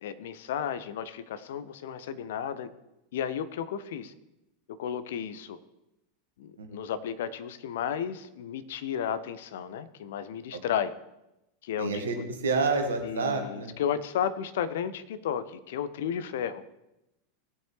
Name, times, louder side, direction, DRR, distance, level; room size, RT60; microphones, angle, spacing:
voice 1, 0.0-2.7 3.1-4.1 4.8-5.6 6.4-10.9 11.6-11.9 12.2-12.3 13.0-16.6, left 8 dB, 60° left, 13 dB, 0.7 m, -33 dB
voice 2, 11.8-12.2 12.4-13.8, right 4 dB, 65° right, 5 dB, 1.7 m, -28 dB
18.5 x 7.2 x 3.3 m, 0.90 s
figure-of-eight pair, 85°, 0 cm